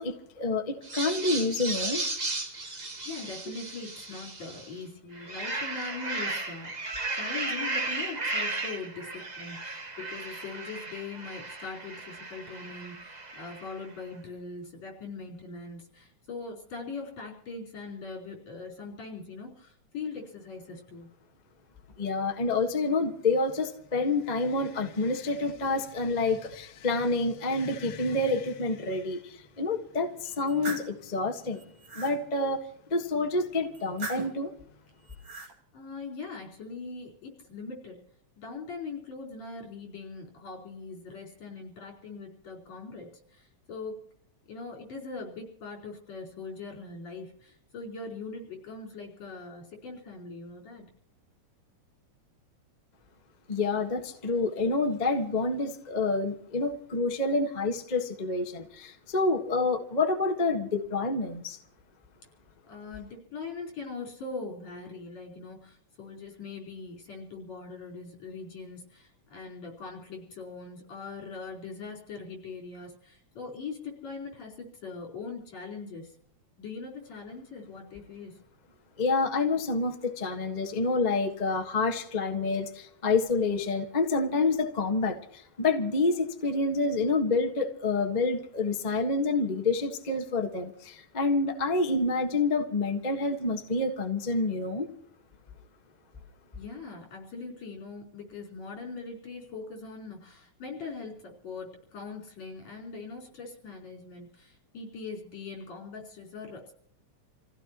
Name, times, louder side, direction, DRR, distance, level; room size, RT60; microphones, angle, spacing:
voice 1, 0.0-2.0 22.0-31.6 31.9-32.6 32.9-34.5 53.5-61.6 79.0-94.9, left 3 dB, 25° left, 3 dB, 0.9 m, -28 dB
sound 1, 0.8-4.7 5.1-13.8, right 2 dB, 30° right, 0.7 m, -35 dB
voice 2, 3.1-21.1 35.7-38.0 38.4-43.9 44.5-50.9 62.6-76.2 76.6-78.4 96.6-106.7, left 4 dB, 65° left, 0 dB, 5.7 m, -41 dB
sound 2, 30.2-30.9 31.5-32.2 33.7-34.4 35.0-35.5, right 3 dB, 50° right, 3.4 m, -39 dB
28.0 x 16.0 x 3.0 m, 0.68 s
omnidirectional pair, 3.3 m